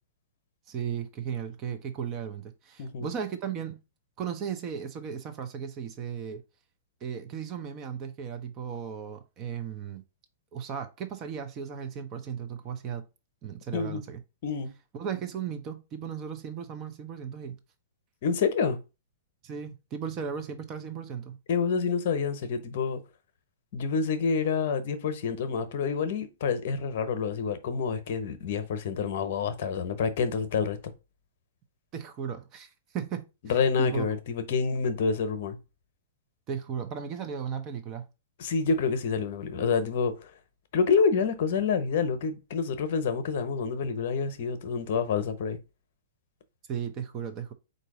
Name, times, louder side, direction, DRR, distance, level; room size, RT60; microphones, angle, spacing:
voice 1, 0.7-3.8 4.2-6.4 7.0-10.0 10.5-13.1 13.4-14.2 14.9-17.6 19.4-21.4 31.9-33.3 33.8-34.1 36.5-38.1 46.7-47.5, right 7 dB, 35° right, 0.8 m, -36 dB
voice 2, 2.8-3.1 13.7-14.0 14.4-14.7 18.2-18.8 21.5-23.0 23.7-30.9 33.5-35.6 38.4-40.3 40.7-45.6, left 5 dB, 55° left, 0.8 m, -28 dB
4.0 x 2.7 x 4.7 m
hypercardioid pair, 115°, 0 cm